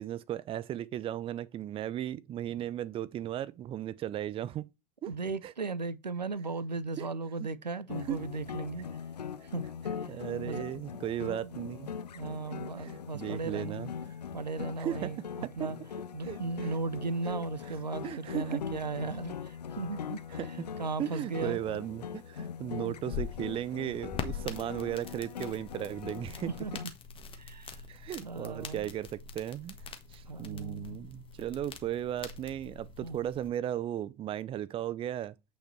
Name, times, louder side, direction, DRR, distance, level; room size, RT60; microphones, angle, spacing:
voice 1, 0.0-4.7 5.0-5.1 5.4-5.5 7.0-7.1 7.4-7.5 8.1-8.2 10.1-11.9 12.8-13.9 14.8-15.1 15.4-15.7 16.2-16.4 18.0-18.6 20.4-20.5 21.0-26.5 27.9-29.8 30.1-35.3, right 11 dB, 25° right, 0.5 m, -36 dB
voice 2, 5.1-8.9 9.4-9.7 10.0-10.6 11.2-11.5 12.1-13.8 14.3-15.8 16.1-21.6 22.9-23.0 26.5-26.7 27.3-27.8 28.2-28.9 30.2-31.0 33.0-33.2, right 3 dB, 85° right, 0.7 m, -37 dB
sound 1, 7.9-26.8, left 7 dB, 75° left, 0.6 m, -41 dB
sound 2, 22.9-33.5, left 7 dB, 25° left, 1.6 m, -44 dB
8.9 x 5.2 x 4.4 m
figure-of-eight pair, 80°, 21 cm